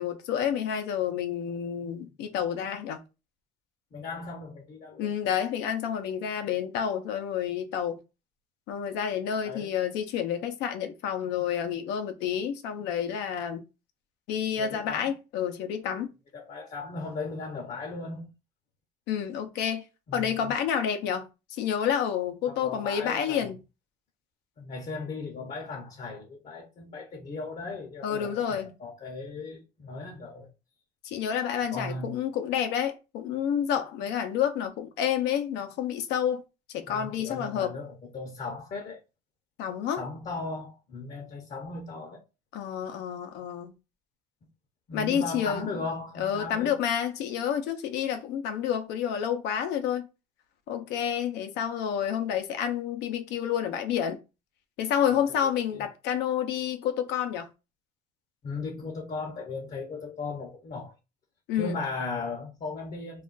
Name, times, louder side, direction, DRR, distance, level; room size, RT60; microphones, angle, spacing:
voice 1, 0.0-3.0 5.0-8.0 8.7-13.6 14.3-16.1 19.1-19.8 20.1-23.6 28.0-28.7 31.0-36.4 36.7-37.7 39.6-40.0 42.5-43.7 44.9-45.7 46.2-50.1 50.7-54.2 54.8-57.5 61.5-61.8, left 8 dB, 90° left, 0.6 m, -29 dB
voice 2, 3.9-5.1 9.4-9.7 14.6-15.1 16.3-18.3 20.1-20.6 22.5-23.5 24.6-30.5 31.7-32.2 36.9-39.0 40.0-42.2 44.9-46.8 55.4-55.9 58.4-60.9 61.6-63.2, left 3 dB, 45° left, 0.7 m, -37 dB
2.4 x 2.2 x 3.8 m
cardioid pair, 110°, 17 cm